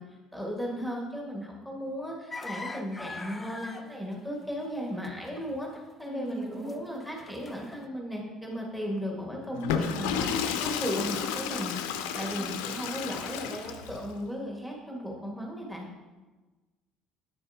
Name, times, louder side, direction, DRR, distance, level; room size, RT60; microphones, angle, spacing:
voice 1, 0.0-11.7 12.1-15.9, equal, 5° right, -2 dB, 1.7 m, -36 dB
sound 1, 2.3-6.3 6.5-7.9, left 3 dB, 15° left, 0.6 m, -42 dB
voice 2, 6.1-6.8 12.3-12.6, right 3 dB, 45° right, -2 dB, 2.0 m, -40 dB
Water / Toilet flush, 9.5-14.0, left 7 dB, 75° left, 0.5 m, -32 dB
8.5 x 6.9 x 2.8 m, 1.2 s
hypercardioid pair, 60°, 0 cm